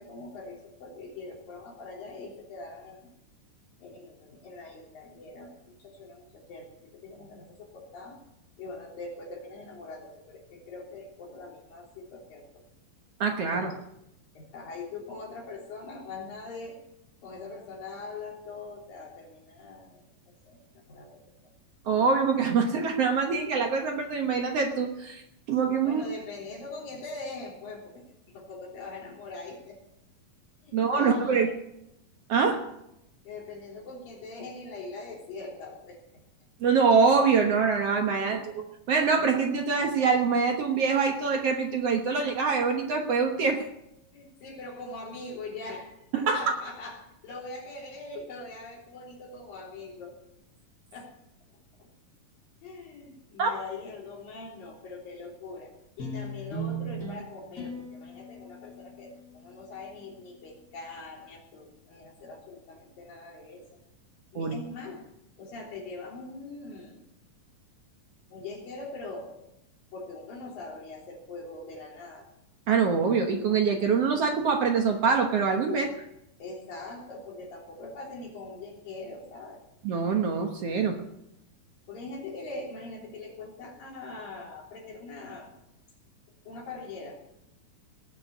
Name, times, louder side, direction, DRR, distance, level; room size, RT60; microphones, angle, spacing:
voice 1, 0.0-3.0 3.8-8.2 8.6-12.6 13.5-13.8 14.3-16.8 17.2-20.0 20.4-21.2 25.8-29.8 30.6-31.5 33.2-36.0 38.3-38.4 44.1-50.2 50.9-51.2 51.8-51.9 52.6-63.6 64.3-65.0 65.4-67.0 68.3-69.3 69.9-72.3 75.7-75.9 76.4-79.6 81.9-85.5 86.4-87.2, left 3 dB, 85° left, -1 dB, 5.2 m, -42 dB
voice 2, 13.2-13.7 21.8-25.2 25.5-26.0 30.7-31.5 32.3-32.6 36.6-43.7 46.1-46.4 53.4-53.5 64.3-64.5 72.7-75.9 79.8-81.0, right 5 dB, 60° right, 4 dB, 1.8 m, -24 dB
sound 1, 56.0-60.6, right 2 dB, 25° left, 2.9 m, -39 dB
19.0 x 6.5 x 9.3 m, 0.82 s
omnidirectional pair, 3.9 m